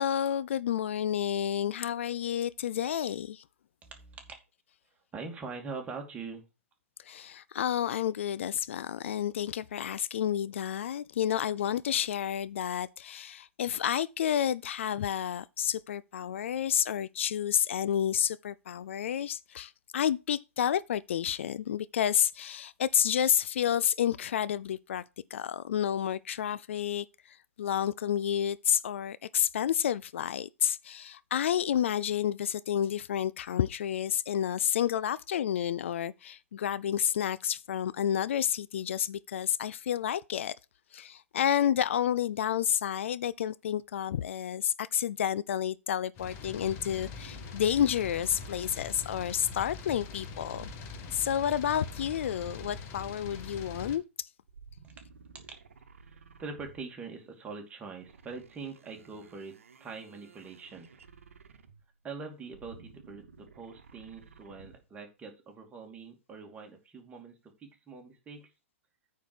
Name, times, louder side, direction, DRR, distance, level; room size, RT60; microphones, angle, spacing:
voice 1, 0.0-3.4 7.0-25.0 25.3-40.5 40.9-50.7 51.1-54.3, left 10 dB, 60° left, 0.4 m, -30 dB
voice 2, 3.8-4.4 5.1-6.4 54.8-55.5 56.1-60.9 62.0-68.5, right 4 dB, 15° right, 2.7 m, -43 dB
sound 1, 46.1-54.0, left 4 dB, 35° left, 1.7 m, -43 dB
sound 2, 46.5-49.5 50.5-53.2 54.4-57.0 58.0-62.0 62.4-64.9, right 5 dB, 70° right, 1.2 m, -54 dB
9.1 x 4.7 x 6.8 m
figure-of-eight pair, 110°, 7 cm